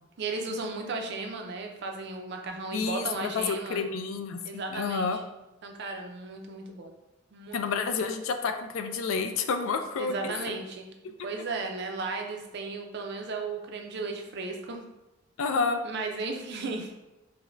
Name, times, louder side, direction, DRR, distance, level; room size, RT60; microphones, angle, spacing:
voice 1, 0.2-3.8 4.4-5.2 5.6-6.9 7.3-7.6 10.0-10.9 11.2-14.8 15.8-16.9, right 3 dB, 50° right, 3 dB, 0.4 m, -35 dB
voice 2, 2.7-5.2 7.5-10.3 15.4-15.8, left 5 dB, 65° left, 7 dB, 0.3 m, -29 dB
4.9 x 2.1 x 2.5 m, 1.0 s
head